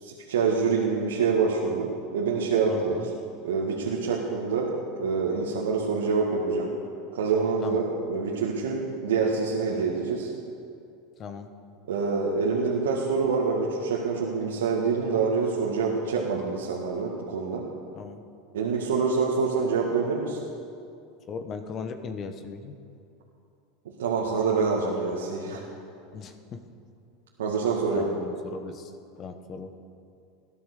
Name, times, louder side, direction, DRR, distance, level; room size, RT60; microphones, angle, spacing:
voice 1, 0.0-3.0 3.4-4.7 5.0-6.7 7.1-10.3 11.9-17.6 18.5-20.4 24.0-25.6 27.4-28.1, right 5 dB, 75° right, -3 dB, 1.9 m, -26 dB
voice 2, 2.7-3.1 7.6-7.9 11.2-11.5 17.9-18.2 21.3-22.7 26.1-26.6 27.9-28.9 29.1-29.8, left 5 dB, 40° left, 8 dB, 1.4 m, -38 dB
17.5 x 11.5 x 6.8 m, 2.5 s
hypercardioid pair, 85°, 0 cm